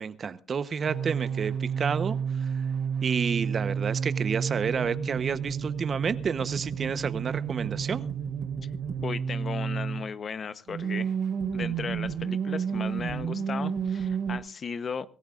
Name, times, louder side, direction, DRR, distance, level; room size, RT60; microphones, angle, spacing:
voice 1, 0.0-2.7 3.0-8.0, right 6 dB, 45° right, 14 dB, 1.0 m, -30 dB
sound 1, 0.9-10.1 10.7-14.4, right 7 dB, 70° right, 3.8 m, -31 dB
voice 2, 9.0-11.1 11.5-15.1, left 6 dB, 45° left, 14 dB, 0.9 m, -36 dB
25.5 x 14.5 x 2.5 m, 0.40 s
cardioid pair, 85°, 0 cm